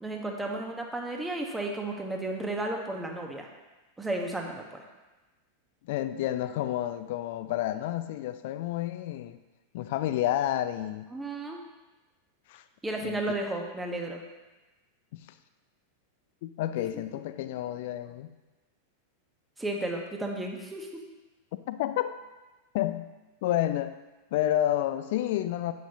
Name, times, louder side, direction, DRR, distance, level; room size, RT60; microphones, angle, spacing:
voice 1, 0.0-3.5 4.0-4.8 11.1-11.6 12.8-14.2 16.8-17.0 19.6-21.0, right 2 dB, 10° right, 1 dB, 1.4 m, -33 dB
voice 2, 5.9-9.4 9.7-11.1 12.5-12.6 13.0-13.2 15.1-15.3 16.4-18.3 21.7-22.1 22.7-23.0 23.4-23.9 24.3-25.7, left 13 dB, 50° left, 12 dB, 0.5 m, -30 dB
10.5 x 9.1 x 3.0 m, 1.1 s
figure-of-eight pair, 90°, 0 cm